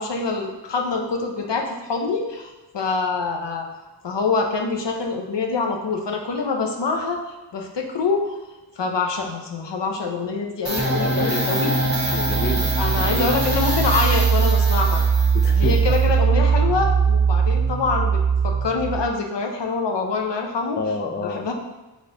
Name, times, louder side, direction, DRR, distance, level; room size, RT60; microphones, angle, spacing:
voice 1, 0.0-3.7 4.0-8.4 8.8-11.7 12.8-15.0 15.5-20.8 21.2-21.5, left 4 dB, 70° left, 2 dB, 0.7 m, -25 dB
sound 1, 10.6-19.1, right 5 dB, 35° right, 1.1 m, -20 dB
voice 2, 10.8-11.8 12.1-12.7 13.2-13.3 15.3-15.8 20.8-21.5, left 3 dB, 25° left, 4 dB, 0.4 m, -29 dB
4.1 x 3.2 x 3.8 m, 1.1 s
wide cardioid pair, 45°, 44 cm